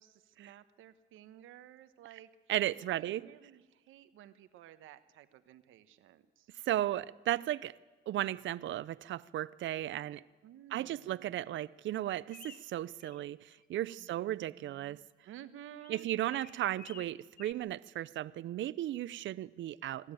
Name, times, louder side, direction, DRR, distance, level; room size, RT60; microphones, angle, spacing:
voice 1, 0.0-2.3 2.9-6.5 10.4-11.5 14.0-16.1, right 11 dB, 85° right, 1.2 m, -54 dB
voice 2, 2.5-3.2 6.7-7.7 8.1-10.2 10.7-15.0 15.9-20.1, right 13 dB, 70° right, 0.6 m, -35 dB
sound 1, 12.3-13.2 13.5-14.1 15.8-17.5, left 7 dB, 50° left, 1.0 m, -54 dB
25.5 x 13.0 x 9.0 m
cardioid pair, 90°, 20 cm